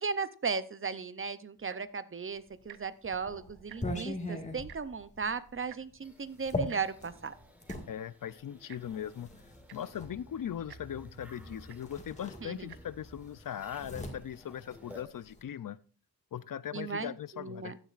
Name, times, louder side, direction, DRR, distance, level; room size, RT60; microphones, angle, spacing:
voice 1, 0.0-7.4 12.4-12.7 16.7-17.8, right 5 dB, 35° right, 14 dB, 0.5 m, -36 dB
Tick-tock, 1.6-2.0 2.6-2.8 3.1-3.2 3.5-4.1 4.7-4.8 5.7-5.8 6.7-6.8 7.7-7.8 8.7-8.8 9.4-9.5 9.7-10.0 10.7-10.8 11.7-11.8 12.6-12.8 13.5-13.6, right 9 dB, 85° right, 0.7 m, -50 dB
sound 1, 2.5-7.9 8.8-10.1 11.3-11.5 11.8-12.9 13.2-15.4, left 1 dB, 20° left, 1.8 m, -40 dB
sound 2, 6.0-15.0, equal, 5° right, 1.3 m, -54 dB
voice 2, 7.9-9.3 9.7-15.8 16.3-17.7, left 10 dB, 60° left, 17 dB, 0.5 m, -39 dB
15.0 x 10.0 x 2.4 m, 0.39 s
wide cardioid pair, 140°, 37 cm